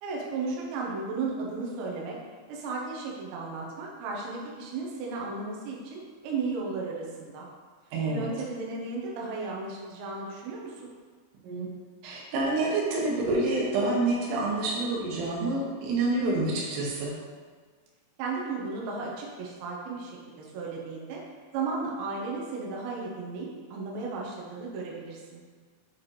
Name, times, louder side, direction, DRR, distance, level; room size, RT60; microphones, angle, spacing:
voice 1, 0.0-2.2 2.5-7.5 8.1-10.9 18.2-21.2 21.5-25.4, right 4 dB, 75° right, -3 dB, 3.0 m, -34 dB
voice 2, 7.9-8.3 11.4-11.7 12.0-17.2, right 2 dB, 90° right, -3 dB, 3.6 m, -27 dB
7.9 x 4.5 x 3.1 m, 1.5 s
omnidirectional pair, 5.6 m